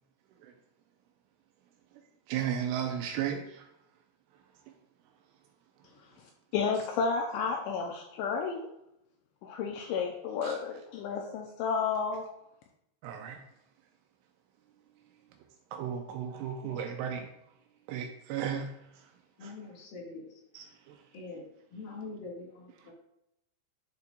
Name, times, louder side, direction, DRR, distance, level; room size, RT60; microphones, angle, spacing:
voice 1, 1.9-3.7 10.4-10.6 13.0-13.4 15.7-17.3 17.9-19.1 19.4-19.6 20.5-21.0 22.8-22.9, right 8 dB, 85° right, 4 dB, 2.9 m, -35 dB
voice 2, 6.5-8.7 9.4-12.2, left 5 dB, 85° left, 2 dB, 2.7 m, -31 dB
voice 3, 19.4-20.4 21.1-22.9, left 3 dB, 55° left, -4 dB, 3.1 m, -44 dB
11.0 x 6.8 x 2.3 m, 0.81 s
omnidirectional pair, 5.9 m